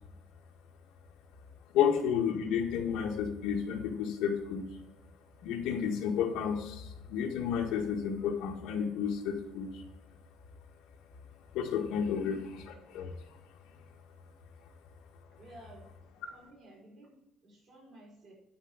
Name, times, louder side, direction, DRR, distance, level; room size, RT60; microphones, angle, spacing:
voice 1, 1.7-4.7 5.4-9.8 11.5-13.1, left 7 dB, 70° left, 1 dB, 1.6 m, -31 dB
voice 2, 15.4-15.9 16.3-17.1 17.4-18.3, right 1 dB, 35° right, -3 dB, 4.3 m, -54 dB
10.0 x 5.0 x 7.8 m, 0.88 s
cardioid pair, 175°, 0 cm